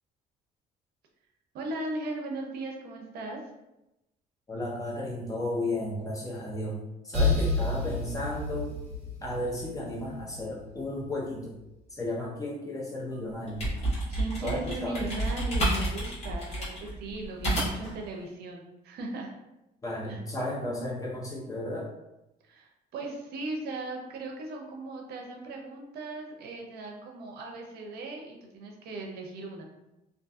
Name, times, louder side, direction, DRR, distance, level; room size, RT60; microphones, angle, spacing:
voice 1, 1.5-3.4 14.1-19.3 20.1-20.2 22.4-29.6, right 2 dB, 70° right, 1 dB, 0.6 m, -38 dB
voice 2, 4.5-8.7 9.2-11.6 11.9-13.7 14.4-15.1 19.8-21.9, left 1 dB, 20° left, -4 dB, 0.8 m, -34 dB
sound 1, 7.1-10.8, left 3 dB, 45° right, 1.4 m, -30 dB
sound 2, 13.3-18.0, right 1 dB, 40° left, 1.3 m, -30 dB
2.6 x 2.5 x 2.3 m, 0.93 s
cardioid pair, 110°, 17 cm